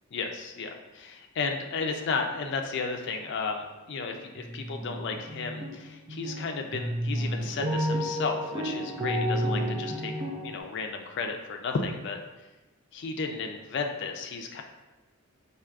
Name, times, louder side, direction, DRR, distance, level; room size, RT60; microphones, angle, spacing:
voice 1, 0.1-10.1 10.4-12.2 12.9-14.6, left 4 dB, 55° left, 4 dB, 0.4 m, -33 dB
sound 1, 3.9-4.1 4.4-5.7 6.1-10.6, equal, 20° right, 0.3 m, -31 dB
4.5 x 2.6 x 2.4 m, 1.1 s
head